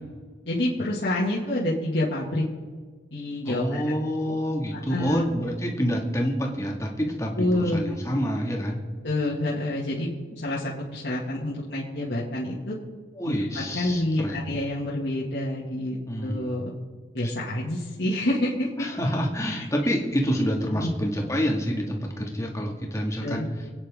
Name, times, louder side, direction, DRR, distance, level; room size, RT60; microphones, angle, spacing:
voice 1, 0.5-2.4 3.1-3.8 4.7-5.3 7.4-7.8 9.0-10.1 10.4-12.7 13.2-13.3 13.7-16.7 17.1-18.9 20.7-20.9 23.2-23.5, left 1 dB, 70° left, -6 dB, 2.4 m, -27 dB
voice 2, 3.5-8.8 13.2-14.4 16.1-16.5 17.2-17.3 18.8-23.4, equal, 15° left, 0 dB, 2.1 m, -27 dB
28.5 x 9.8 x 3.8 m, 1.5 s
head